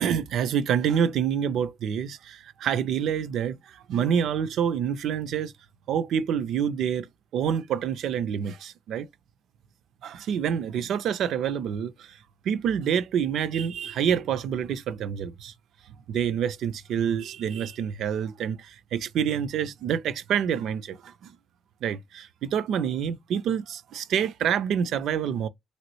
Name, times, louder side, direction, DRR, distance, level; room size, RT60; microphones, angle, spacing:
voice 1, 0.0-3.6 3.9-5.5 5.9-7.1 7.3-9.1 10.0-12.2 12.5-15.5 16.1-21.4 21.8-25.5, right 8 dB, 75° right, 0.4 m, -27 dB
3.1 x 2.6 x 3.0 m
cardioid pair, 90°, 0 cm